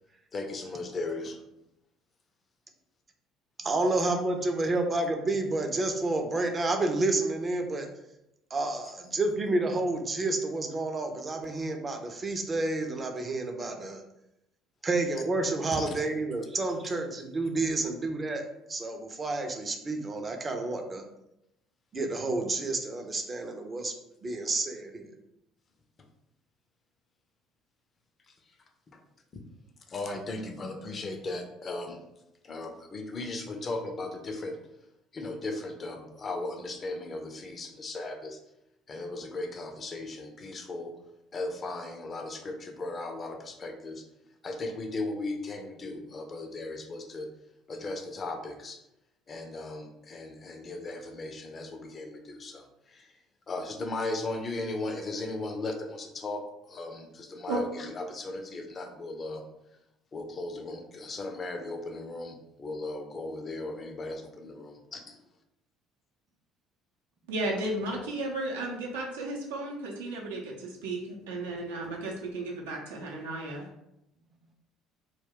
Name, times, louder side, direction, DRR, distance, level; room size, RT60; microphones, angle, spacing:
voice 1, 0.3-1.4 15.7-15.9 16.7-16.8 28.9-29.0 29.9-32.0 32.4-34.6 35.1-38.4 38.9-40.9 41.3-44.0 44.4-47.3 47.7-48.8 49.3-53.1 53.5-59.4 60.1-65.0, left 2 dB, 35° left, 5 dB, 0.5 m, -37 dB
voice 2, 3.6-7.9 8.5-14.0 14.8-18.4 18.7-21.0 21.9-23.9 24.2-25.1, right 2 dB, 30° right, 4 dB, 0.5 m, -30 dB
voice 3, 67.3-71.0 71.3-73.7, right 2 dB, 80° right, -1 dB, 0.5 m, -34 dB
2.2 x 2.2 x 3.5 m, 0.85 s
hypercardioid pair, 60°, 0 cm